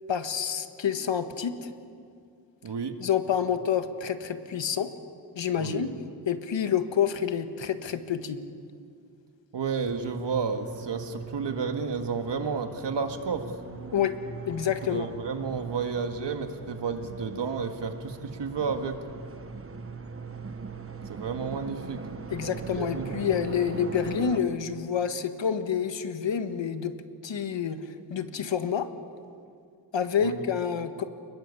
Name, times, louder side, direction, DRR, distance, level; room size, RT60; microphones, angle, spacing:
voice 1, 0.1-1.7 3.0-4.9 5.4-5.9 6.3-8.4 13.9-14.2 14.5-15.1 22.3-26.9 27.2-28.9 29.9-31.0, left 8 dB, 85° left, 9 dB, 1.7 m, -28 dB
voice 2, 2.6-2.9 5.6-5.9 9.5-13.5 14.9-19.0 21.1-22.0 22.7-23.1 30.2-30.4, right 5 dB, 70° right, 6 dB, 2.1 m, -31 dB
sound 1, 9.9-24.4, right 5 dB, 30° right, 1.2 m, -41 dB
29.5 x 21.0 x 8.4 m, 2.3 s
wide cardioid pair, 155°, 43 cm